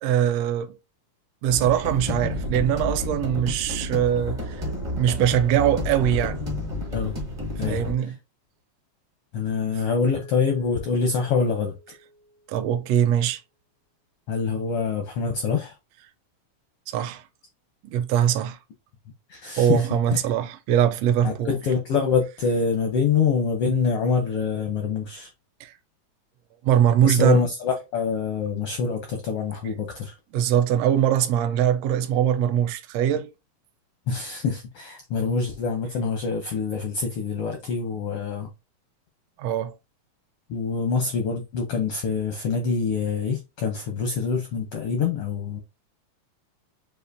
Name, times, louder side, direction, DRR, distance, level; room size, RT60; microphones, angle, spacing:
voice 1, 0.0-0.8 1.4-4.6 5.0-6.4 7.6-8.1 12.5-13.4 16.9-17.2 17.8-18.6 19.6-21.6 25.6-25.7 26.6-27.4 30.3-33.3 39.4-39.8, right 10 dB, 80° right, 1.5 m, -22 dB
sound 1, 1.5-7.9, left 1 dB, 30° right, 0.5 m, -30 dB
voice 2, 9.3-11.7 14.3-15.7 19.3-20.2 21.2-25.3 27.0-30.2 34.1-38.5 40.5-45.6, left 5 dB, 75° left, 1.3 m, -25 dB
Mallet percussion, 10.1-13.0, right 1 dB, 65° right, 0.9 m, -50 dB
6.7 x 2.5 x 2.6 m
omnidirectional pair, 3.5 m